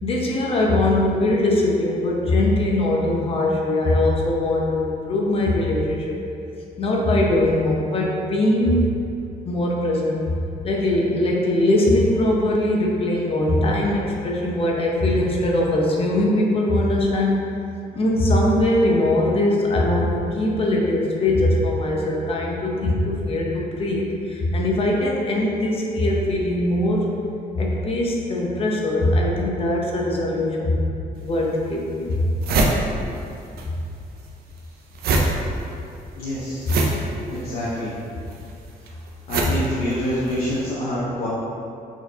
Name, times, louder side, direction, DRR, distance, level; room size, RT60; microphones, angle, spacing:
voice 1, 0.0-6.2 6.8-9.0 9.4-10.4 10.6-17.3 17.9-27.1 27.5-30.8 31.2-32.2 35.1-35.2 36.7-36.8 39.4-39.5, left 1 dB, 40° left, -2 dB, 0.7 m, -21 dB
sound 1, 31.2-31.3 31.8-31.9 32.1-33.7 33.9-40.5, right 3 dB, 85° right, 0.5 m, -25 dB
voice 2, 36.2-36.8 37.3-37.9 39.3-41.3, equal, 75° left, -8 dB, 0.9 m, -26 dB
4.4 x 4.3 x 2.7 m, 2.5 s
cardioid pair, 145°, 15 cm